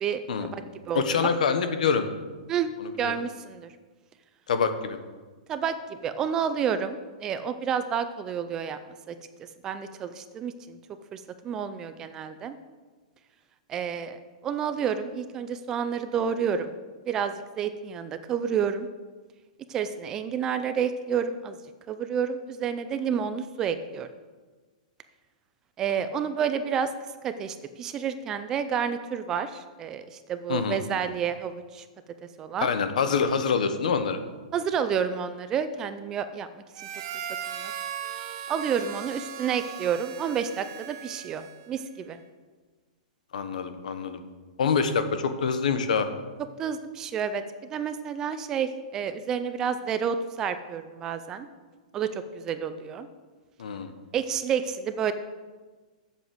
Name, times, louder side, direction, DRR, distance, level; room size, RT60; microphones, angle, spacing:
voice 1, 0.0-1.2 2.5-2.7 3.0-3.7 5.5-8.8 9.1-9.2 9.6-10.8 11.1-12.6 13.7-16.7 17.1-18.9 19.7-21.6 21.9-24.1 25.8-26.9 27.2-31.8 32.4-32.7 34.5-36.5 37.1-37.7 38.5-42.2 46.6-51.5 51.9-53.1 54.1-55.1, right 7 dB, 15° right, 10 dB, 0.3 m, -30 dB
voice 2, 0.9-2.0 2.8-3.2 4.5-5.0 30.5-30.8 32.6-34.2 43.3-44.2 44.6-46.1 53.6-53.9, left 6 dB, 70° left, 9 dB, 1.1 m, -26 dB
Harmonica, 36.7-41.8, right 9 dB, 35° right, 0.7 m, -38 dB
8.0 x 7.2 x 7.8 m, 1.4 s
hypercardioid pair, 180°, 4 cm